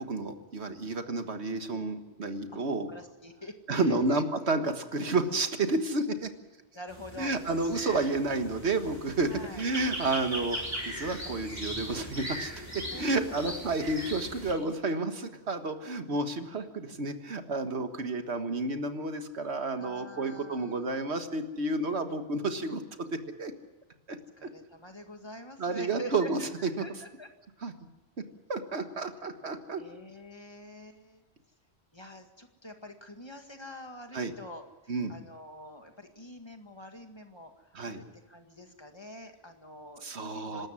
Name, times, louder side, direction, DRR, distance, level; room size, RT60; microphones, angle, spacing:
voice 1, 0.0-2.9 3.7-6.3 7.2-10.6 10.8-12.5 13.0-23.5 24.1-24.5 25.6-26.8 27.6-27.7 28.5-29.8 34.1-34.3 34.9-35.1 37.7-38.0 40.0-40.7, right 3 dB, 85° right, 7 dB, 1.8 m, -31 dB
voice 2, 2.9-4.2 6.7-7.4 9.3-9.6 12.8-13.4 19.8-20.8 24.1-27.3 29.8-31.2 31.9-40.7, equal, 25° left, 5 dB, 1.9 m, -46 dB
sound 1, 6.9-14.5, equal, 15° right, 4.4 m, -39 dB
26.0 x 13.0 x 9.7 m, 1.2 s
omnidirectional pair, 1.1 m